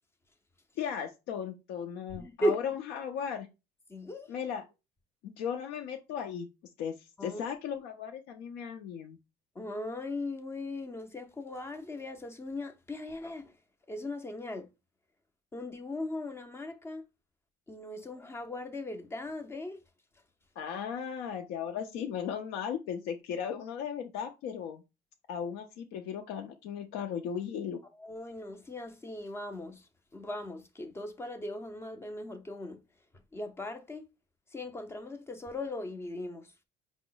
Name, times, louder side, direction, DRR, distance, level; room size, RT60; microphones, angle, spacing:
voice 1, 0.8-3.5 4.3-4.6 5.4-6.5 6.8-6.9 7.2-9.2 20.6-24.8 25.3-27.8, left 8 dB, 80° left, 0.6 m, -36 dB
voice 2, 2.1-2.6 3.9-4.3 7.2-7.4 9.6-13.5 13.9-14.7 15.5-17.0 17.7-19.8 28.0-32.8 33.3-34.0 34.5-36.5, left 1 dB, 15° left, 0.5 m, -38 dB
4.8 x 2.0 x 3.8 m
cardioid pair, 155°, 17 cm